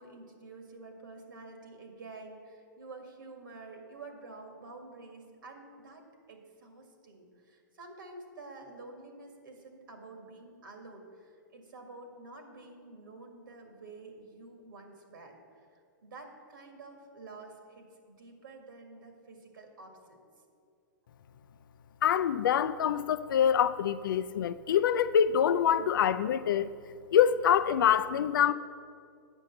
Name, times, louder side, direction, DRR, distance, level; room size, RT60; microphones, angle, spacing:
voice 1, 0.0-20.2, right 3 dB, 80° right, 1.9 m, -49 dB
voice 2, 22.0-26.7 27.1-28.5, left 9 dB, 80° left, 0.4 m, -25 dB
9.1 x 5.3 x 7.6 m
hypercardioid pair, 130°, 11 cm